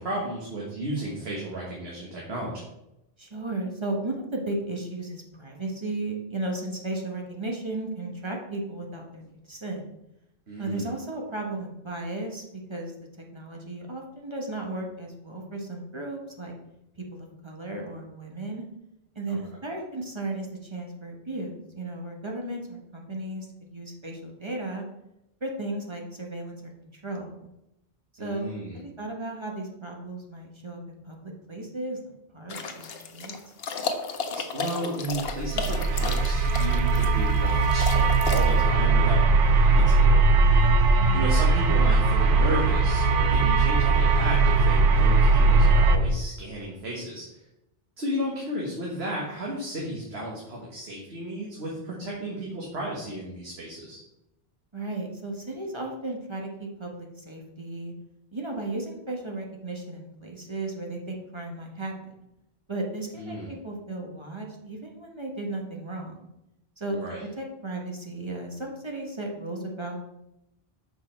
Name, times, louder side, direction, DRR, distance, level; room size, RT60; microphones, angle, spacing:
voice 1, 0.0-2.5 10.5-10.9 19.3-19.4 28.2-28.8 34.5-47.4 48.0-54.0 63.1-63.5 66.9-67.2, right 1 dB, 85° right, -4 dB, 1.6 m, -34 dB
voice 2, 3.2-9.2 9.5-9.8 10.6-12.4 12.7-12.9 13.3-16.5 17.1-18.6 19.1-24.8 25.4-27.5 28.1-33.3 40.9-41.3 54.7-57.9 58.3-62.1 62.7-66.3 66.8-67.0 67.4-70.0, right 2 dB, 30° right, 1 dB, 1.2 m, -35 dB
sound 1, 32.5-38.6, left 5 dB, 75° left, 1.0 m, -34 dB
sound 2, 35.3-46.0, right 3 dB, 60° right, 0.8 m, -20 dB
6.5 x 5.1 x 4.4 m, 0.87 s
omnidirectional pair, 1.0 m